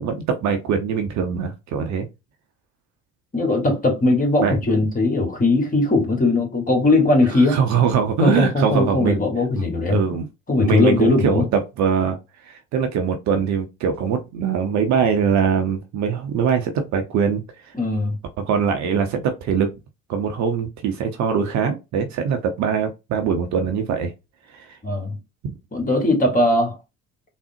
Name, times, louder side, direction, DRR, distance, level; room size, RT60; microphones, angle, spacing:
voice 1, 0.0-2.1 4.4-4.6 7.5-9.2 9.6-10.3 10.6-12.2 12.4-17.4 18.5-19.7 20.1-24.1 24.5-24.7 25.4-25.6, right 6 dB, 45° right, 0.7 m, -22 dB
voice 2, 3.3-7.6 8.2-10.0 10.5-11.4 17.7-18.1 24.8-25.2 25.7-26.8, left 2 dB, 20° left, 1.3 m, -19 dB
3.5 x 2.0 x 2.6 m
figure-of-eight pair, 60°, 39 cm